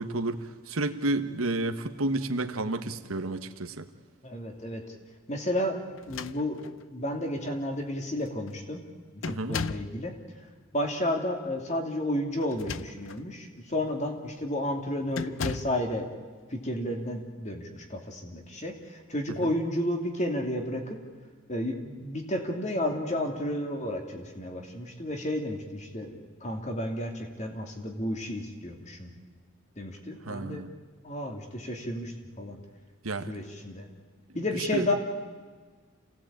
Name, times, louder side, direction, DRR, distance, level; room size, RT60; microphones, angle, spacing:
voice 1, 0.0-3.9 9.3-9.6 19.4-19.5 30.2-30.7 33.0-33.3 34.7-34.9, right 2 dB, 90° right, 7 dB, 1.3 m, -31 dB
voice 2, 4.2-4.8 5.3-5.8 6.1-8.8 9.1-10.5 10.7-16.1 16.5-21.0 21.5-29.1 29.8-30.6 31.0-32.6 33.3-33.9 34.3-34.9, left 1 dB, 35° left, 3 dB, 2.8 m, -32 dB
sound 1, 6.0-6.9 7.7-7.8 8.2-8.6 9.2-10.0 12.4-13.3 13.8-14.0 15.1-15.8, left 5 dB, 70° left, 0.6 m, -36 dB
27.5 x 17.0 x 8.8 m, 1.5 s
head